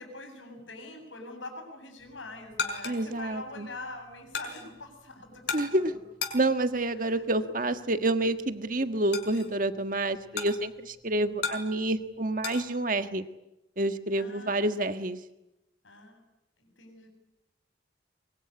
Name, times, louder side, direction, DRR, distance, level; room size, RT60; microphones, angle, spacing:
voice 1, 0.0-5.9 7.0-7.4 14.2-14.7 15.8-16.2 16.6-17.1, left 2 dB, 90° left, 6 dB, 7.8 m, -44 dB
sound 1, 2.0-12.7, left 5 dB, 60° left, 5.5 m, -39 dB
voice 2, 2.8-3.7 5.5-5.9 6.3-13.2 13.8-15.2, right 2 dB, 45° right, 9 dB, 1.6 m, -28 dB
23.5 x 23.5 x 9.8 m, 0.92 s
head